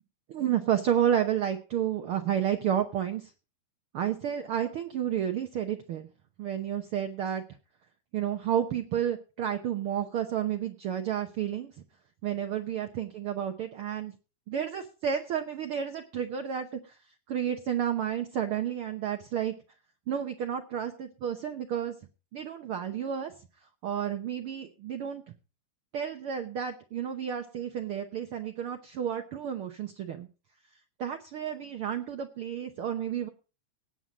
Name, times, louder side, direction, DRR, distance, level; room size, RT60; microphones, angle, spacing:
voice 1, 0.3-3.3 3.9-6.1 6.4-7.4 8.1-11.7 12.2-14.1 14.5-17.0 17.3-19.5 20.1-21.9 22.3-23.3 23.8-25.3 25.9-30.3 31.0-33.3, right 9 dB, 80° right, 5 dB, 1.2 m, -31 dB
18.0 x 7.5 x 5.0 m, 0.33 s
omnidirectional pair, 3.8 m